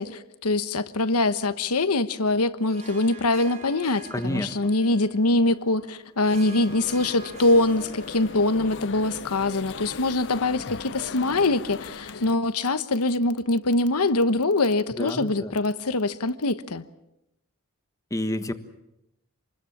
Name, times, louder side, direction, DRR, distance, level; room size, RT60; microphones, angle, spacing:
voice 1, 0.0-16.8, left 2 dB, 85° left, 1.2 m, -23 dB
Harp, 2.6-11.2, right 3 dB, 35° right, 3.8 m, -48 dB
voice 2, 4.1-4.7 15.0-15.5 18.1-18.5, left 1 dB, 15° left, 1.4 m, -29 dB
sound 1, 6.3-12.4, left 4 dB, 55° left, 0.9 m, -39 dB
27.5 x 21.0 x 7.4 m
head